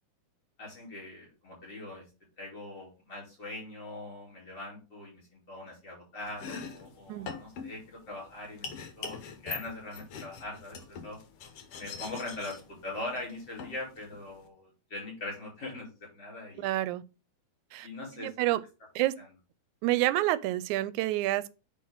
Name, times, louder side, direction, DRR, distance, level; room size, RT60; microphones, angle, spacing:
voice 1, 0.6-2.0 2.4-11.2 11.8-16.7 17.8-18.3 19.2-19.3, left 2 dB, 35° left, 5.1 m, -42 dB
Domestic sounds home sounds, 6.2-14.5, left 5 dB, 60° left, 1.8 m, -44 dB
voice 2, 16.6-17.0 17.7-17.9 18.2-18.6 19.0-19.1 19.8-21.6, right 16 dB, 85° right, 2.0 m, -28 dB
9.3 x 4.3 x 3.9 m
omnidirectional pair, 3.4 m